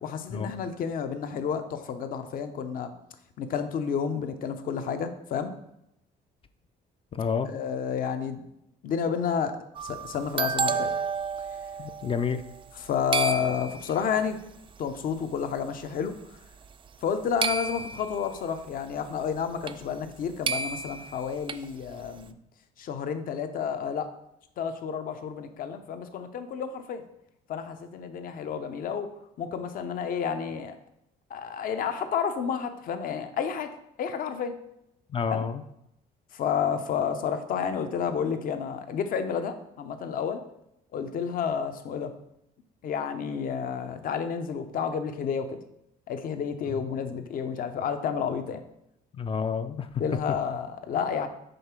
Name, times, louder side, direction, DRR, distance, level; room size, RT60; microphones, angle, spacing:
voice 1, 0.0-2.9 3.4-5.5 7.5-8.4 8.8-9.6 9.8-10.9 12.7-14.4 14.8-16.1 17.0-22.3 22.8-24.1 24.6-27.0 27.5-29.1 29.4-30.8 31.3-34.6 35.3-35.4 36.3-40.4 40.9-42.1 42.8-45.6 46.1-48.6 50.0-51.3, left 7 dB, 55° left, 8 dB, 0.7 m, -30 dB
voice 2, 7.1-7.5 11.8-12.4 35.1-35.6 46.7-46.8 49.2-50.0, left 6 dB, 30° left, 9 dB, 0.4 m, -29 dB
sound 1, 9.7-12.9 13.1-14.0 14.9-15.0 15.6-16.0 17.4-18.2 19.7-19.8 20.0-20.1 20.5-21.6, right 5 dB, 30° right, 0.4 m, -31 dB
5.3 x 3.7 x 5.9 m, 0.81 s
cardioid pair, 110°, 17 cm